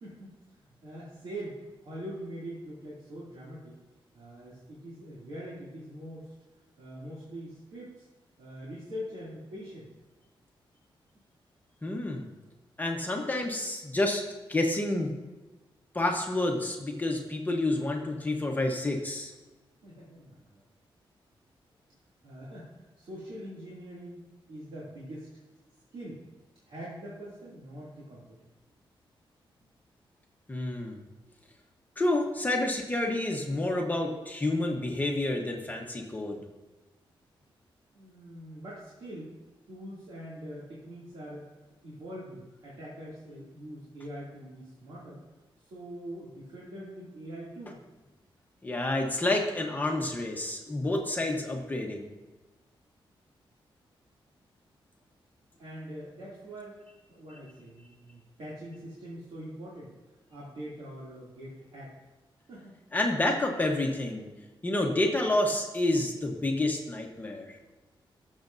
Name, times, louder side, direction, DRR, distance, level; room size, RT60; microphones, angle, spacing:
voice 1, 0.0-3.7 4.1-6.3 6.8-8.1 8.4-9.9 19.8-20.6 22.2-25.3 25.9-26.2 26.6-28.5 37.9-39.3 39.7-41.4 41.8-45.2 45.6-47.8 55.6-56.8 57.1-59.9 60.3-61.9 62.5-62.7, equal, 75° right, -8 dB, 2.7 m, -43 dB
voice 2, 11.8-12.3 12.8-14.2 14.5-15.1 15.9-19.3 30.5-31.0 32.0-36.4 48.6-52.1 62.9-64.3 64.6-67.5, left 2 dB, 20° left, 1 dB, 1.0 m, -29 dB
16.0 x 7.2 x 2.7 m, 1.1 s
wide cardioid pair, 130°, 9 cm